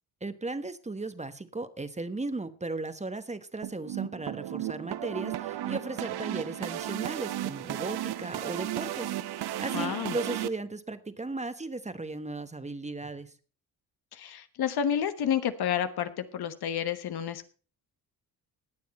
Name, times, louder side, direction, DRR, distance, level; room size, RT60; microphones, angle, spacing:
voice 1, 0.2-9.1 9.3-13.3, right 2 dB, 15° right, 11 dB, 1.0 m, -36 dB
sound 1, 3.6-10.5, right 13 dB, 75° right, 0.8 m, -34 dB
voice 2, 9.7-10.2 14.1-17.5, left 9 dB, 75° left, 10 dB, 1.2 m, -30 dB
19.5 x 6.9 x 4.2 m, 0.38 s
cardioid pair, 70°, 38 cm